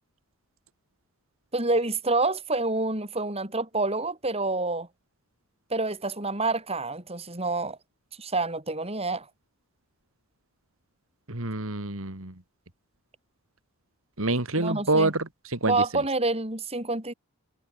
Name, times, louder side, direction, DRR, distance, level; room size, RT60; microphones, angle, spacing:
voice 1, 1.5-4.9 5.7-7.8 8.2-9.3 14.6-15.1 15.6-17.1, right 3 dB, 30° right, 6.9 m, -27 dB
voice 2, 11.3-12.3 14.2-15.2 15.6-15.7, right 2 dB, 70° right, 2.9 m, -26 dB
head